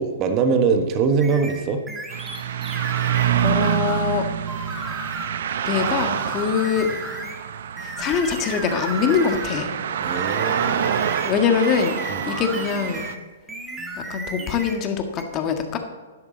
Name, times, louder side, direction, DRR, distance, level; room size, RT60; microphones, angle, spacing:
voice 1, 0.0-1.8 10.0-11.1 12.1-12.2, right 5 dB, 35° right, 6 dB, 1.4 m, -22 dB
sound 1, 1.2-4.1 4.5-5.4 5.7-7.4 7.8-9.7 10.0-13.2 13.5-14.8 15.2-15.3, right 2 dB, 10° right, 1.7 m, -34 dB
sound 2, 2.1-13.1, right 9 dB, 60° right, 0.7 m, -26 dB
voice 2, 3.4-4.2 4.8-4.9 5.7-6.9 7.8-9.7 11.2-11.9 12.3-13.1 14.1-15.8, left 6 dB, 30° left, 5 dB, 1.7 m, -23 dB
12.5 x 10.5 x 4.0 m, 1.4 s
figure-of-eight pair, 115°, 0 cm